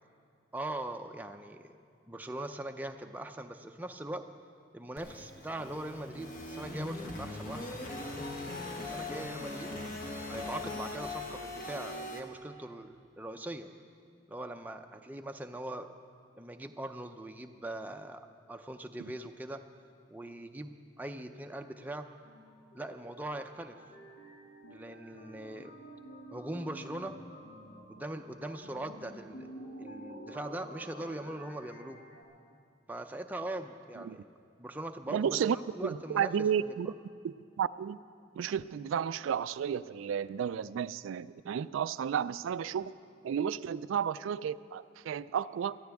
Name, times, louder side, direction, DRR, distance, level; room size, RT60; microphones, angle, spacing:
voice 1, 0.5-1.8 2.1-4.3 4.7-7.7 8.9-9.7 10.3-13.7 14.3-15.9 16.4-19.6 20.1-22.1 22.7-23.8 24.7-25.7 26.3-27.2 27.9-29.5 29.8-32.0 32.9-34.2 34.6-36.3 36.6-36.9, right 1 dB, 10° right, 5 dB, 0.5 m, -41 dB
sound 1, 5.0-12.2, left 2 dB, 45° left, 1.4 m, -40 dB
sound 2, 21.6-32.2, right 1 dB, 75° left, 2.3 m, -50 dB
voice 2, 35.1-35.6 35.8-36.9 37.2-38.0 38.3-42.9 43.2-45.8, right 8 dB, 90° right, 15 dB, 0.3 m, -32 dB
22.5 x 14.0 x 3.5 m, 2.3 s
head